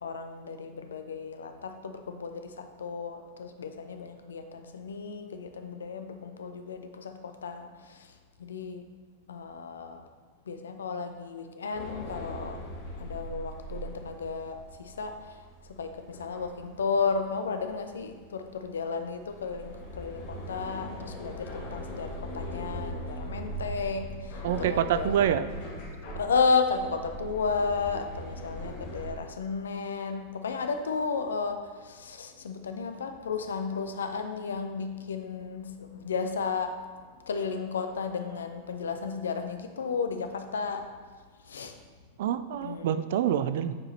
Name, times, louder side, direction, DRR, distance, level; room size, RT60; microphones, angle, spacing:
voice 1, 0.0-8.1 8.4-8.9 9.3-10.1 10.5-12.6 13.0-15.4 15.7-25.1 26.1-36.8 37.3-40.9 41.5-41.7 42.6-42.9, left 5 dB, 70° left, 7 dB, 0.5 m, -33 dB
sound 1, 11.7-29.1, equal, 50° left, 1.3 m, -40 dB
voice 2, 24.4-25.5 42.2-43.8, right 10 dB, 55° right, 12 dB, 0.3 m, -26 dB
8.2 x 4.7 x 3.2 m, 1.5 s
figure-of-eight pair, 90°, 0 cm